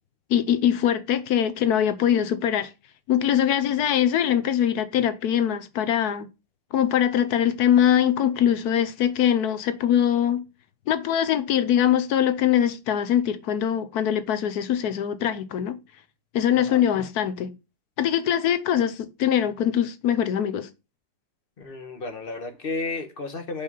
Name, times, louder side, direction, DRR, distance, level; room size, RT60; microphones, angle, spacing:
voice 1, 0.3-2.7 3.1-6.3 6.7-10.4 10.9-15.8 16.3-17.5 18.0-20.7, left 10 dB, 70° left, 1.2 m, -22 dB
voice 2, 21.6-23.6, left 3 dB, 35° left, 1.2 m, -33 dB
5.5 x 5.2 x 5.3 m
omnidirectional pair, 1.8 m